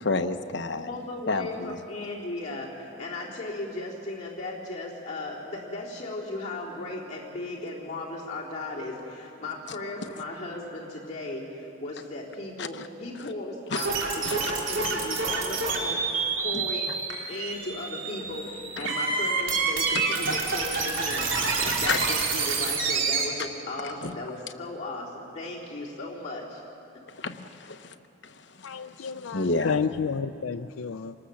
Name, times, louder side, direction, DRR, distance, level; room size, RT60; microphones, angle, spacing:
voice 1, 0.0-0.9 1.3-1.8 12.6-12.9 13.2-13.3 13.7-14.5 16.5-16.7 18.8-19.0 20.3-20.4 21.9-22.1 23.8-24.2 27.1-27.9 28.2-29.8, left 3 dB, 55° left, 1.0 m, -31 dB
voice 2, 0.8-16.9 17.2-26.6, left 2 dB, 35° left, 3.6 m, -36 dB
sound 1, 13.8-23.2, right 4 dB, 70° right, 3.1 m, -28 dB
voice 3, 28.6-31.1, left 6 dB, 85° left, 0.5 m, -31 dB
26.0 x 19.0 x 7.1 m
head